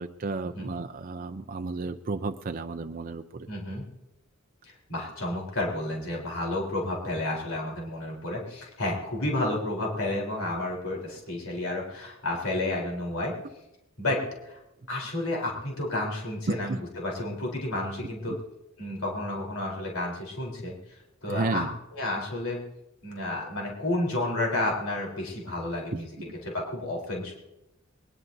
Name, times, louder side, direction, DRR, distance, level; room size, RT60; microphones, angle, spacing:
voice 1, 0.0-3.5 16.5-16.8 18.3-18.4 21.3-21.7 25.9-26.3, right 3 dB, 40° right, 7 dB, 0.5 m, -32 dB
voice 2, 3.5-3.8 4.6-13.3 14.0-14.6 14.9-18.4 18.8-22.6 23.0-26.1 26.5-27.4, left 1 dB, 85° left, -2 dB, 3.9 m, -31 dB
21.5 x 20.5 x 2.7 m, 0.91 s
head